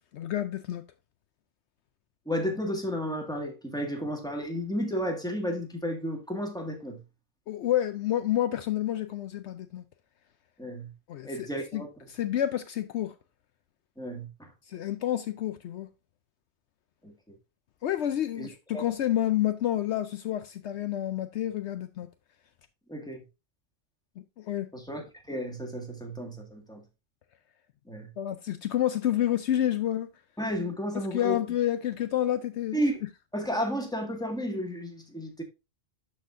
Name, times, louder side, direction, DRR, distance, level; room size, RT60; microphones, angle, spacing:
voice 1, 0.1-0.8 7.5-9.8 11.1-13.1 14.7-15.9 17.8-22.1 24.4-24.7 28.2-30.1 30.9-32.8, left 12 dB, 70° left, 0.8 m, -29 dB
voice 2, 2.2-7.0 10.6-10.9 11.2-11.9 14.0-14.5 17.0-17.1 18.4-18.9 22.9-23.2 24.7-26.8 27.9-28.1 30.4-31.4 32.7-33.0 33.3-35.4, equal, 5° left, 1.8 m, -32 dB
12.5 x 4.3 x 2.5 m
omnidirectional pair, 1.2 m